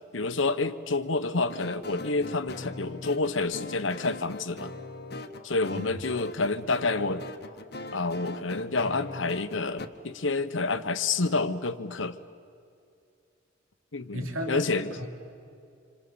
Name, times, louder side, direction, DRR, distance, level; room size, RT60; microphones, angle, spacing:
voice 1, 0.1-4.7 5.4-7.2 7.9-12.2 13.9-14.9, left 3 dB, 70° left, 11 dB, 1.1 m, -28 dB
sound 1, 1.5-9.9, left 2 dB, 50° left, 1.2 m, -41 dB
voice 2, 14.1-15.1, equal, 85° right, 2 dB, 3.1 m, -35 dB
27.5 x 26.5 x 7.1 m, 2.4 s
head